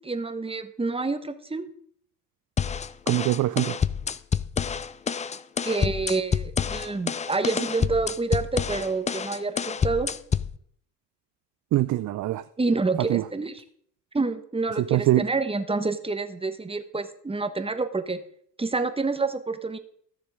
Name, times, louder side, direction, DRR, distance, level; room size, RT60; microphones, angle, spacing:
voice 1, 0.0-1.7 5.6-10.1 12.6-13.6 14.1-18.2 18.6-19.8, right 3 dB, 10° right, 9 dB, 1.2 m, -28 dB
sound 1, 2.6-10.6, left 7 dB, 15° left, 0.4 m, -28 dB
voice 2, 3.1-3.8 11.7-12.4 13.0-13.3 14.7-15.3, right 15 dB, 40° right, 14 dB, 0.5 m, -23 dB
14.0 x 6.7 x 5.0 m, 0.64 s
hypercardioid pair, 60°, 46 cm